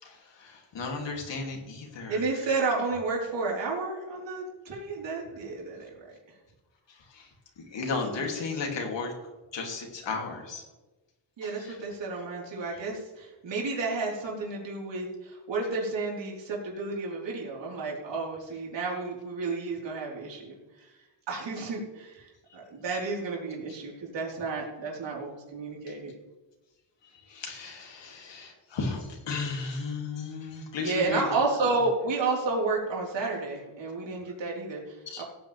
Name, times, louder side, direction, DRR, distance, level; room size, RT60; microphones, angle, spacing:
voice 1, 0.0-2.2 7.1-7.2 7.7-9.1 9.5-10.6 11.4-11.8 12.1-12.2 27.3-31.2 35.1-35.2, left 4 dB, 70° left, 1 dB, 3.0 m, -34 dB
voice 2, 2.1-6.2 11.4-20.9 21.3-26.1 30.8-35.2, right 3 dB, 75° right, -3 dB, 4.4 m, -31 dB
17.0 x 9.5 x 3.5 m, 1.1 s
wide cardioid pair, 135°, 45 cm